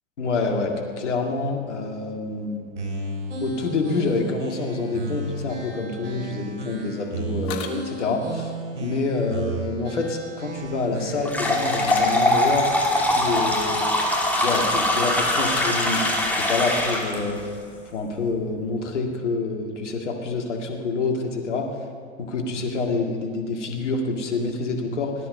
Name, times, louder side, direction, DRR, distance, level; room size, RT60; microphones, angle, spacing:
voice 1, 0.2-2.8 3.4-8.5 8.8-12.7 13.2-14.0 14.4-17.4 17.9-21.7 22.2-25.1, left 3 dB, 80° left, 2 dB, 2.1 m, -27 dB
sound 1, 2.8-11.5, right 2 dB, 80° right, 3.8 m, -34 dB
sound 2, 7.5-8.2 11.5-12.1 12.8-13.3 14.4-14.6 15.3-16.2, left 9 dB, 50° left, 1.6 m, -35 dB
sound 3, 11.2-17.2, left 1 dB, 5° left, 2.5 m, -22 dB
18.0 x 10.5 x 5.4 m, 2.1 s
hypercardioid pair, 90°, 35 cm